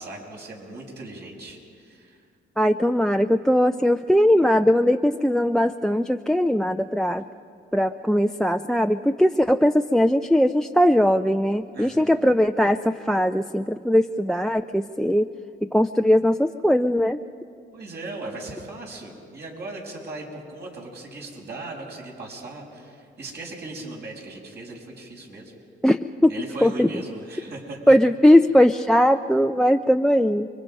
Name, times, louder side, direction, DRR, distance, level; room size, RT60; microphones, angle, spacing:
voice 1, 0.0-2.2 11.7-12.1 17.7-25.6 26.3-27.8, right 2 dB, 55° right, -1 dB, 6.1 m, -38 dB
voice 2, 2.6-7.2 7.7-15.3 15.6-17.2 25.8-26.3 26.6-26.9 27.9-30.5, equal, 5° left, 9 dB, 0.5 m, -20 dB
30.0 x 23.5 x 5.3 m, 2.4 s
cardioid pair, 90°, 20 cm